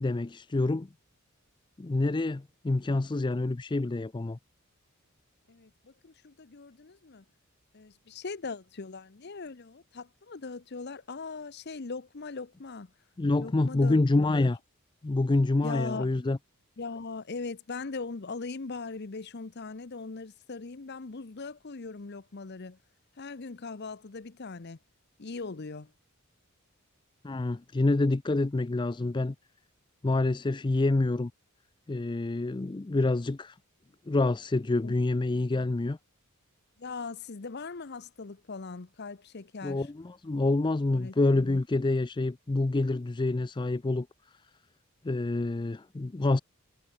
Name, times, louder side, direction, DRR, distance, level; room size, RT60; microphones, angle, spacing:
voice 1, 0.0-0.9 1.8-4.4 13.2-14.6 15.0-16.4 27.2-29.3 30.0-31.3 31.9-33.5 34.1-36.0 39.6-44.1 45.0-46.4, left 2 dB, 20° left, 0.4 m, -27 dB
voice 2, 5.5-7.2 7.7-12.9 13.4-14.5 15.6-16.1 16.8-22.8 23.2-24.8 25.2-25.9 34.8-34.9 36.8-39.9 40.9-41.6, left 4 dB, 50° left, 0.8 m, -40 dB
head